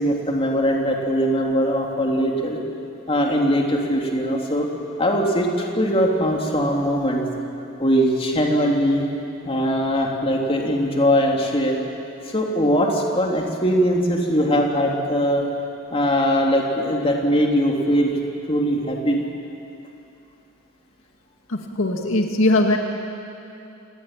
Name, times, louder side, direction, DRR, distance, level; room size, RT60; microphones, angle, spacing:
voice 1, 0.0-2.6 3.1-4.7 5.0-7.2 7.8-9.0 9.4-11.8 12.3-15.5 15.9-18.1 18.5-19.2, equal, 25° left, 0 dB, 3.0 m, -21 dB
voice 2, 21.5-22.8, left 2 dB, 70° left, 2 dB, 2.1 m, -20 dB
28.5 x 19.5 x 9.1 m, 2.7 s
head